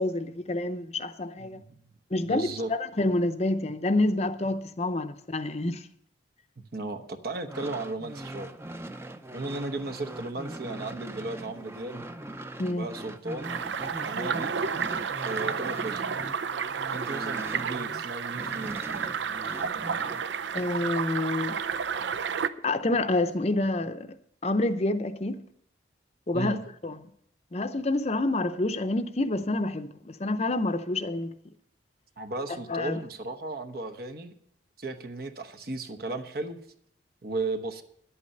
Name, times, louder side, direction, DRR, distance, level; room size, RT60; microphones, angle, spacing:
voice 1, 0.0-1.6 2.1-5.8 12.6-12.9 14.1-14.3 20.5-21.6 22.6-24.1 24.4-25.4 26.3-26.6 26.8-27.1 27.5-31.3 32.7-33.0, left 2 dB, 35° left, 0.6 m, -28 dB
voice 2, 1.4-1.9 2.2-2.7 6.6-8.5 9.3-12.0 12.7-13.6 14.0-14.5 15.2-16.0 16.9-18.8 26.3-26.6 32.2-34.3 34.8-36.6 37.2-37.8, right 2 dB, 55° right, 1.0 m, -35 dB
sound 1, 7.3-18.0 18.3-20.3, right 1 dB, 15° right, 0.6 m, -41 dB
sound 2, 13.4-22.5, right 6 dB, 75° right, 0.5 m, -31 dB
11.0 x 8.5 x 6.5 m
head